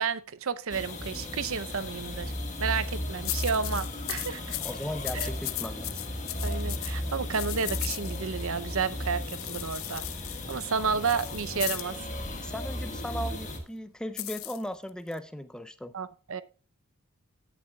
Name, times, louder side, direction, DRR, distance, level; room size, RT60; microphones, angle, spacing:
voice 1, 0.0-2.3 2.6-4.6 5.2-5.3 6.4-10.0 10.5-12.0 15.9-16.4, right 6 dB, 70° right, 0.6 m, -31 dB
sound 1, 0.7-13.6, left 1 dB, 35° left, 1.6 m, -35 dB
sound 2, 2.7-3.0 3.2-8.5 9.2-12.0 14.2-15.2, left 18 dB, 70° left, 0.5 m, -37 dB
voice 2, 4.6-6.0 12.4-15.9, equal, 5° left, 0.5 m, -37 dB
16.5 x 7.0 x 2.3 m
head